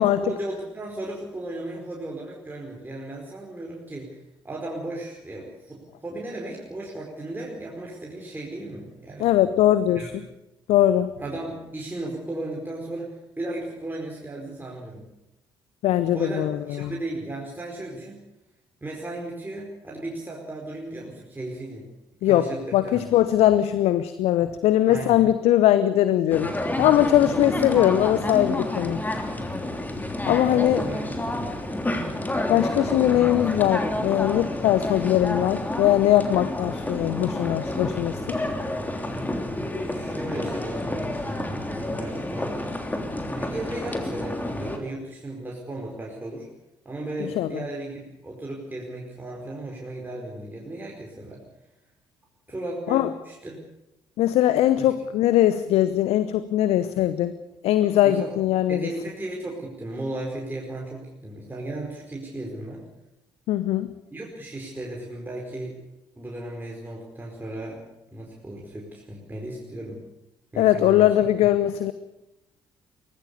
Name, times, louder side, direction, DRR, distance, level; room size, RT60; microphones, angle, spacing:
voice 1, 0.0-4.2 4.4-9.3 9.9-10.1 11.2-15.1 16.1-18.2 18.8-21.9 22.2-23.1 24.9-25.2 30.2-31.2 39.8-42.5 43.1-46.5 46.8-51.4 52.5-53.6 54.8-54.9 58.0-58.3 58.7-62.8 64.1-65.8 66.2-67.8 68.1-70.0 70.5-71.1, right 1 dB, 15° right, -2 dB, 4.7 m, -35 dB
voice 2, 9.2-10.0 10.7-11.1 15.8-16.9 22.2-26.5 26.8-29.0 30.3-30.8 32.5-38.4 47.2-47.6 52.9-53.1 54.2-57.3 57.6-58.9 63.5-63.9 70.6-71.9, left 13 dB, 60° left, 14 dB, 0.9 m, -21 dB
sound 1, 26.3-44.8, left 1 dB, 15° left, 3.2 m, -29 dB
23.5 x 18.0 x 6.9 m, 0.91 s
figure-of-eight pair, 45°, 12 cm